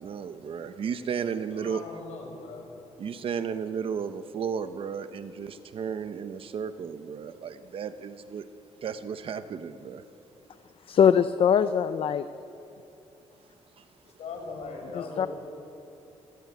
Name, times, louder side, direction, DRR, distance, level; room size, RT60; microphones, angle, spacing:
voice 1, 0.0-1.8 3.0-8.5 8.8-10.0 13.8-13.9, right 7 dB, 50° right, 10 dB, 1.0 m, -34 dB
voice 2, 1.5-2.6 14.0-15.3, left 4 dB, 70° left, 1 dB, 6.1 m, -40 dB
voice 3, 10.9-12.2 14.9-15.3, left 8 dB, 50° left, 11 dB, 0.6 m, -22 dB
28.5 x 17.0 x 8.2 m, 2.9 s
wide cardioid pair, 175°, 12 cm